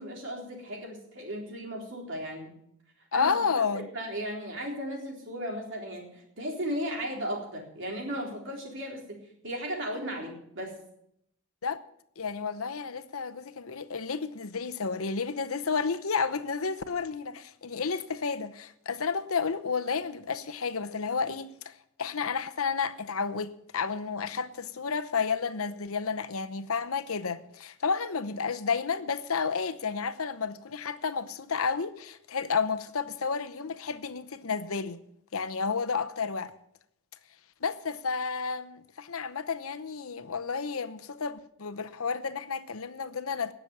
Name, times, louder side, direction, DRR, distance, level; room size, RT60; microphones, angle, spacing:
voice 1, 0.0-2.5 3.1-9.2 9.4-10.7, equal, 55° right, 3.9 m, -36 dB
voice 2, 3.1-3.9 11.6-11.8 12.2-21.7 22.0-35.0 35.3-36.5 37.6-43.5, left 5 dB, 75° left, 0.8 m, -31 dB
18.5 x 7.0 x 7.2 m
head